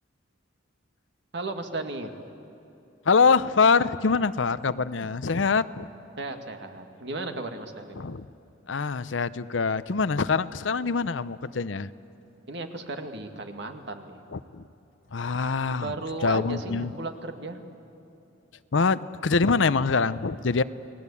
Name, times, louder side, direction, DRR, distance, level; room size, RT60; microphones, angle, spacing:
voice 1, 1.3-2.1 6.2-8.1 12.5-14.2 15.8-17.6, right 2 dB, 65° right, 5 dB, 2.0 m, -35 dB
voice 2, 3.1-5.9 8.0-8.3 8.7-11.9 14.3-14.6 15.1-15.9 16.2-16.9 18.7-20.6, left 4 dB, 75° left, 15 dB, 0.7 m, -24 dB
29.5 x 19.5 x 8.5 m, 2.9 s
head